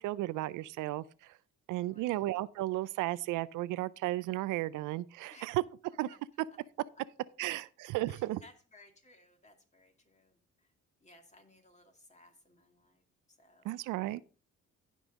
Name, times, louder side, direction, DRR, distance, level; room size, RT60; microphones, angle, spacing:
voice 1, 0.0-1.4 1.7-5.6 6.0-6.1 7.4-8.4 13.6-14.2, right 16 dB, 90° right, 0.5 m, -34 dB
voice 2, 1.9-2.2 5.3-5.6 8.1-10.7 11.0-13.0 13.4-13.7, left 2 dB, 25° left, 2.4 m, -61 dB
16.0 x 5.4 x 3.6 m
cardioid pair, 90°, 30 cm